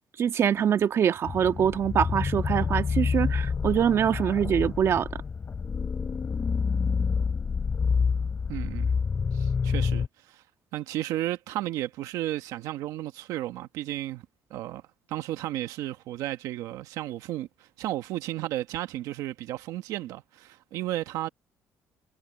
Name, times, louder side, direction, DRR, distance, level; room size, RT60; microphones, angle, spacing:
voice 1, 0.2-5.1, right 8 dB, 50° right, 1.6 m, -24 dB
beast growl ambience, 1.2-10.1, left 5 dB, 35° left, 3.0 m, -28 dB
voice 2, 8.5-8.9 9.3-10.4 10.7-14.2 14.5-14.8 15.1-21.3, right 14 dB, 85° right, 1.3 m, -33 dB
cardioid pair, 105°, 6 cm